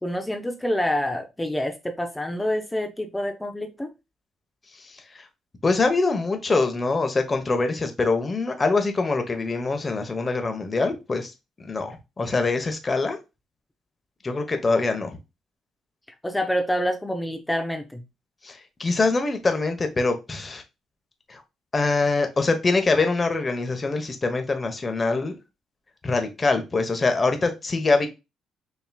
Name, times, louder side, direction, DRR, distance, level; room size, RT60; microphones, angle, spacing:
voice 1, 0.0-3.9 16.2-18.0, equal, 10° left, 0.6 m, -27 dB
voice 2, 4.9-5.2 5.6-11.3 11.6-13.2 14.2-15.2 18.4-20.6 21.3-21.4 21.7-25.4 26.0-28.1, left 3 dB, 30° left, 1.0 m, -24 dB
5.7 x 3.0 x 2.2 m
cardioid pair, 100°, 0 cm